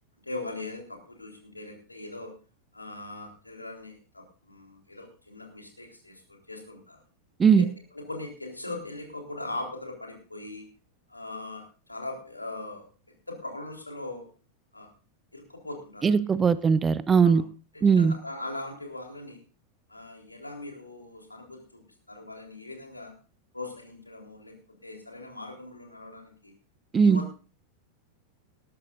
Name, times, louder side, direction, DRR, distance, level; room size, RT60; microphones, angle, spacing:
voice 1, 0.2-2.3 2.7-7.0 7.6-7.7 7.9-10.6 11.1-12.8 13.3-14.3 14.7-14.9 15.3-16.2 17.2-17.4 17.7-19.4 19.9-21.8 22.1-23.1 23.5-24.6 24.8-26.5 27.0-27.3, left 2 dB, 85° left, 2 dB, 3.7 m, -40 dB
voice 2, 16.0-17.4 17.8-18.2 26.9-27.2, right 6 dB, 20° right, 17 dB, 0.7 m, -20 dB
19.0 x 13.5 x 2.6 m, 0.36 s
figure-of-eight pair, 90°, 0 cm